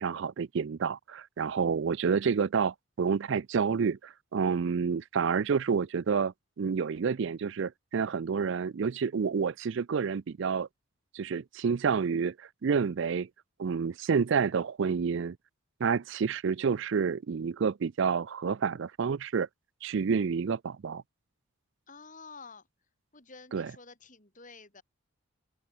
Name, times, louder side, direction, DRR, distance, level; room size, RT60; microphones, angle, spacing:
voice 1, 0.0-10.7 11.1-13.3 13.6-15.4 15.8-19.5 19.8-21.0 23.5-23.7, right 6 dB, 55° right, 0.4 m, -29 dB
voice 2, 21.9-22.6 23.1-24.8, left 4 dB, 35° left, 4.2 m, -50 dB
open air
head